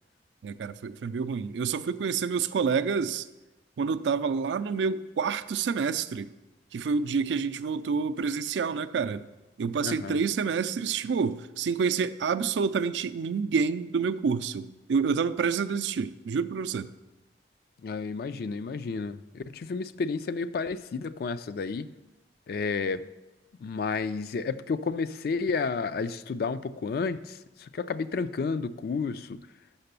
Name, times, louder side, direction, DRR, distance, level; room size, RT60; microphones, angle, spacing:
voice 1, 0.4-3.3 3.8-6.3 6.7-9.3 9.6-16.9, right 5 dB, 90° right, 11 dB, 0.4 m, -28 dB
voice 2, 9.8-10.2 17.8-21.9 22.5-23.0 23.6-29.4, left 4 dB, 60° left, 13 dB, 0.3 m, -31 dB
5.9 x 5.7 x 6.7 m, 1.1 s
head